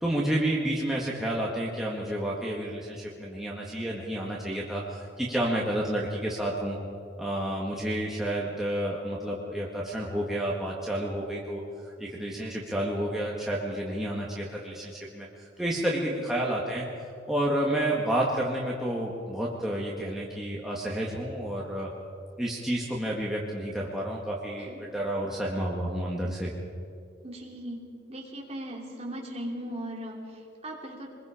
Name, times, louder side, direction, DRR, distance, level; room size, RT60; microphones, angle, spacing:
voice 1, 0.0-6.8 7.2-16.9 17.3-21.9 22.4-26.5, right 1 dB, ahead, -5 dB, 1.8 m, -30 dB
voice 2, 27.2-31.1, right 1 dB, 30° right, -2 dB, 3.2 m, -38 dB
25.0 x 21.0 x 5.0 m, 2.5 s
head